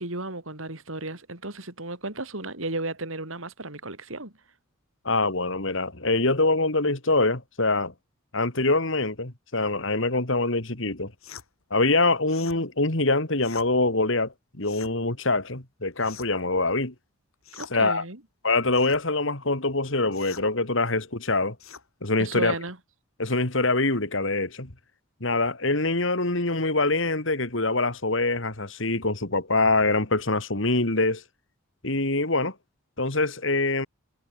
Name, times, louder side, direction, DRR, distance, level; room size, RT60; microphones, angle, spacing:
voice 1, 0.0-4.3 17.5-18.2 22.2-22.8, right 2 dB, 75° right, 5.0 m, -34 dB
voice 2, 5.0-7.9 8.3-11.1 11.7-16.9 17.7-18.0 18.4-21.6 22.0-22.5 23.2-24.7 25.2-31.2 31.8-32.5 33.0-33.9, left 2 dB, 65° left, 2.9 m, -24 dB
sound 1, 11.2-11.5 12.3-12.6 13.4-13.7 14.6-15.0 16.0-16.5 17.4-17.8 18.7-19.0 20.1-20.5 21.6-21.9, left 7 dB, 85° left, 4.8 m, -44 dB
head